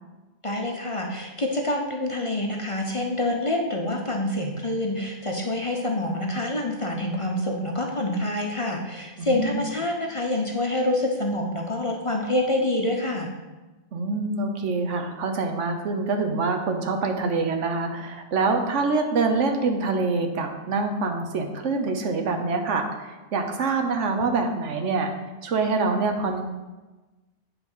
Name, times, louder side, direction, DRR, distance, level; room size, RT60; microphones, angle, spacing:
voice 1, 0.4-13.3, left 1 dB, 35° left, 1 dB, 0.6 m, -26 dB
voice 2, 9.2-9.6 13.9-25.1 25.4-26.4, right 3 dB, 85° right, 4 dB, 1.2 m, -25 dB
8.6 x 3.9 x 5.5 m, 1.2 s
omnidirectional pair, 1.2 m